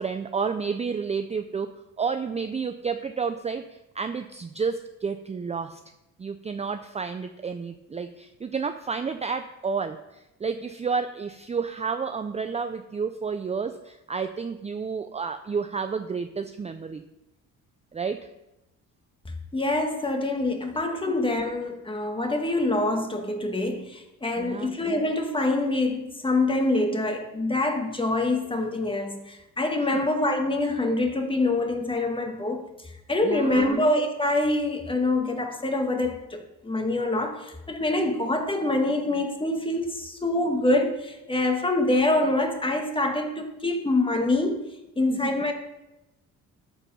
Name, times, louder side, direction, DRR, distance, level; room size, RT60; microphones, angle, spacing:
voice 1, 0.0-1.7 2.0-3.6 3.9-5.8 6.2-17.0 17.9-18.3 24.4-24.7 29.9-30.0 33.2-33.8 45.1-45.3, right 5 dB, 20° right, 8 dB, 0.5 m, -30 dB
voice 2, 19.5-44.6 44.9-45.5, left 2 dB, 15° left, 4 dB, 1.6 m, -25 dB
13.0 x 4.7 x 5.6 m, 0.94 s
cardioid pair, 90°, 33 cm